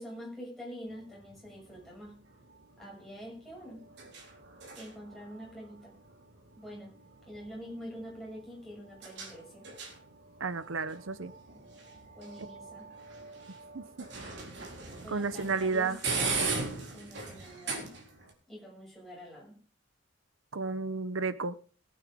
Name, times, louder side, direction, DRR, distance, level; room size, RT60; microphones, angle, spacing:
voice 1, 0.0-2.2 2.8-3.8 4.7-5.9 6.6-6.9 7.2-9.7 12.1-12.9 15.0-16.0 16.9-18.0 18.5-19.6, equal, ahead, -3 dB, 6.6 m, -45 dB
sound 1, 0.9-18.3, right 4 dB, 55° right, 4.0 m, -41 dB
voice 2, 10.4-11.3 12.4-12.5 13.7-13.8 15.1-16.0 20.5-21.6, right 4 dB, 85° right, 14 dB, 0.9 m, -32 dB
20.0 x 9.0 x 3.7 m, 0.38 s
head